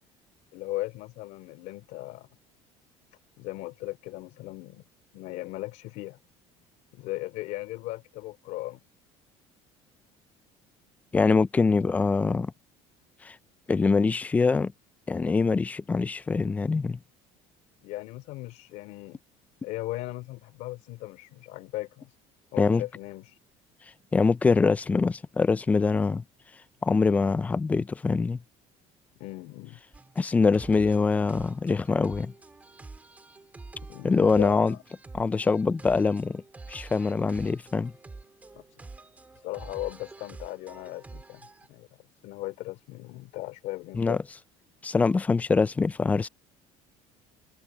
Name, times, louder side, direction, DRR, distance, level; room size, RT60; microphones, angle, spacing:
voice 1, 0.5-2.3 3.4-4.8 5.1-6.2 6.9-8.8 17.8-19.2 19.6-22.1 22.5-23.4 29.2-29.8 33.9-34.8 38.5-38.6 39.4-41.9 42.2-44.2, left 18 dB, 65° left, 3.2 m, -37 dB
voice 2, 11.1-12.5 13.2-13.4 13.7-14.7 15.1-17.0 22.6-22.8 24.1-26.2 26.8-28.4 30.2-32.3 34.0-34.7 35.1-36.4 36.7-37.9 43.9-44.2 44.8-46.3, left 4 dB, 10° left, 0.3 m, -24 dB
sound 1, 29.9-41.7, right 3 dB, 10° right, 2.4 m, -47 dB
cardioid pair, 170°, 13 cm